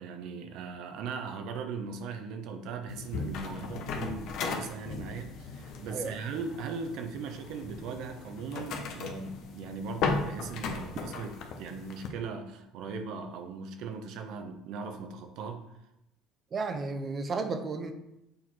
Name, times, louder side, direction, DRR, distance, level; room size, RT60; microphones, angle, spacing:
voice 1, 0.0-15.7, right 5 dB, 70° right, 6 dB, 0.9 m, -39 dB
sound 1, 2.9-12.1, left 5 dB, 65° left, 0.9 m, -37 dB
voice 2, 16.5-17.9, right 4 dB, 40° right, 7 dB, 0.9 m, -33 dB
6.7 x 4.2 x 4.3 m, 0.86 s
supercardioid pair, 90°, 0 cm